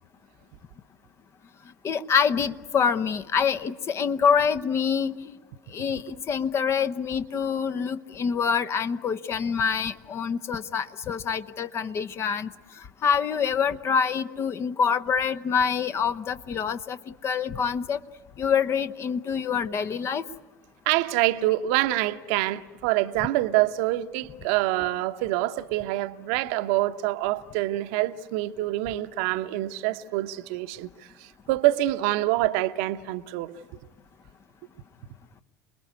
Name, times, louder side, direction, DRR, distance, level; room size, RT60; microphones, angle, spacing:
voice 1, 1.8-5.3 5.7-12.5 13.0-18.0 18.4-20.2, left 6 dB, 30° left, 1.0 m, -26 dB
voice 2, 20.9-30.9 31.2-33.5, right 16 dB, 55° right, 1.0 m, -26 dB
28.5 x 21.0 x 9.6 m
figure-of-eight pair, 75°, 8 cm